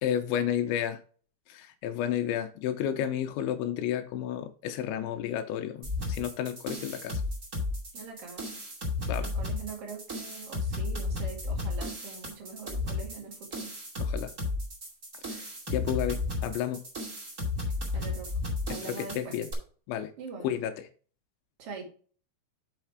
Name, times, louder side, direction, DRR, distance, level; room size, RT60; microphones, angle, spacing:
voice 1, 0.0-1.0 1.5-7.2 9.1-9.3 14.0-14.3 15.3-16.8 18.7-19.5 19.9-20.1 20.4-20.7, left 10 dB, 85° left, 7 dB, 2.7 m, -31 dB
sound 1, 5.8-19.5, left 3 dB, 70° right, 0.7 m, -33 dB
voice 2, 7.9-8.5 9.2-13.7 17.9-18.4 18.7-19.4 20.2-20.5 21.6-21.9, right 5 dB, 50° right, -1 dB, 1.9 m, -43 dB
6.5 x 5.8 x 4.5 m, 0.42 s
omnidirectional pair, 5.8 m